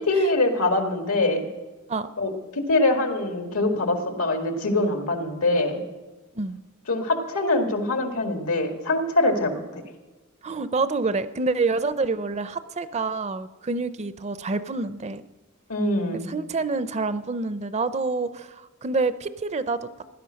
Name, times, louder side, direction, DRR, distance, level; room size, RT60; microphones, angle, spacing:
voice 1, 0.1-1.5 2.2-5.8 6.9-9.8 15.7-16.3, left 2 dB, 85° left, 5 dB, 2.0 m, -24 dB
voice 2, 10.4-15.2 16.3-19.9, right 3 dB, 30° right, 14 dB, 0.5 m, -27 dB
16.0 x 11.5 x 6.4 m, 1.2 s
head